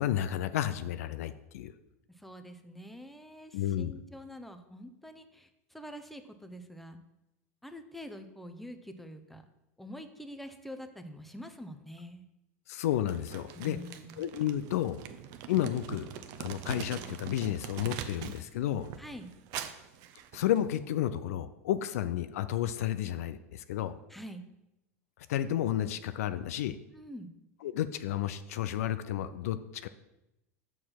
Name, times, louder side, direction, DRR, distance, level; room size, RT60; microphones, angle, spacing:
voice 1, 0.0-1.7 3.5-3.9 12.7-13.8 14.2-15.0 15.5-16.1 16.4-18.9 20.3-23.9 25.3-26.8 27.6-29.9, left 11 dB, 70° left, 12 dB, 0.4 m, -31 dB
voice 2, 2.1-7.0 7.6-9.4 9.8-12.2 13.6-14.2 19.0-19.3 24.1-24.4 26.9-27.3, equal, ahead, 8 dB, 0.7 m, -46 dB
Crumpling crinkling, 13.1-18.5 18.8-20.8, right 9 dB, 50° right, 0.7 m, -43 dB
6.3 x 4.6 x 5.8 m, 0.89 s
hypercardioid pair, 90°, 8 cm